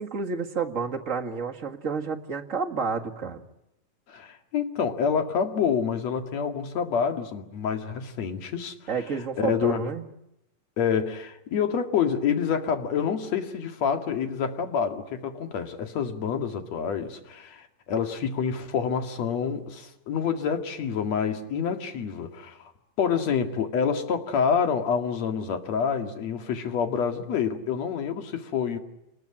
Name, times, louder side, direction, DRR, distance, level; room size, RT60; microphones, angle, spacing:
voice 1, 0.0-3.4 8.9-10.1, right 5 dB, 35° right, 3 dB, 1.4 m, -30 dB
voice 2, 4.1-8.7 9.4-9.8 10.8-22.7 23.0-28.8, left 7 dB, 50° left, 6 dB, 3.1 m, -27 dB
28.5 x 21.0 x 9.9 m, 0.85 s
omnidirectional pair, 4.0 m